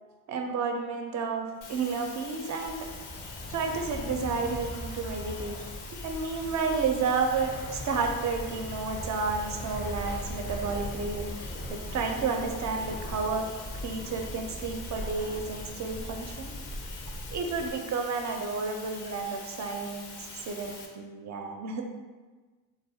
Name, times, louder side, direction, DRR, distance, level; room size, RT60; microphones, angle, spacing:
voice 1, 0.3-2.9 3.5-5.6 6.0-13.5 13.8-16.5 17.3-21.8, right 4 dB, 45° right, 3 dB, 0.4 m, -31 dB
sound 1, 1.6-20.9, left 4 dB, 85° left, 0.6 m, -45 dB
Fixed-wing aircraft airplane, 2.6-17.8, left 1 dB, 25° left, 0.4 m, -39 dB
2.3 x 2.1 x 2.7 m, 1.3 s
supercardioid pair, 70°, 40 cm